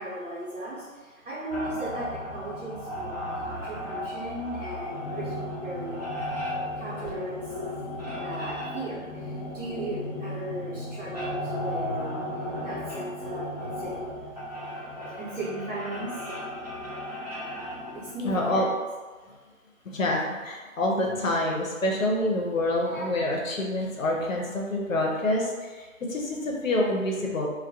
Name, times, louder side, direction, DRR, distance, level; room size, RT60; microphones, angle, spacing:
voice 1, 0.0-6.0 6.8-7.5 8.2-12.2 12.6-14.2 15.1-16.2 17.9-18.6, right 1 dB, 60° right, -11 dB, 1.0 m, -37 dB
sound 1, 1.5-18.1, left 1 dB, 30° right, 0.5 m, -35 dB
voice 2, 18.2-18.7 19.8-27.5, left 1 dB, 65° left, -1 dB, 0.6 m, -27 dB
2.2 x 2.2 x 2.7 m, 1.4 s
figure-of-eight pair, 160°, 43 cm